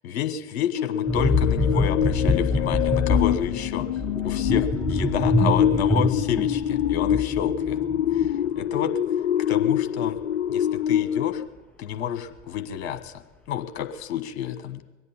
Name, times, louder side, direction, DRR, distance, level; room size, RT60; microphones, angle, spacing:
voice 1, 0.0-3.9 4.2-4.6 4.9-7.8 8.1-8.9 9.5-10.2 10.5-11.4 11.8-13.2 13.5-14.8, left 9 dB, 50° left, 9 dB, 1.3 m, -29 dB
sound 1, 0.8-11.5, left 11 dB, 70° left, 0.5 m, -25 dB
sound 2, 1.0-8.5 8.7-8.9, left 1 dB, 5° left, 0.8 m, -25 dB
22.5 x 8.2 x 7.3 m, 1.1 s
figure-of-eight pair, 85°, 40 cm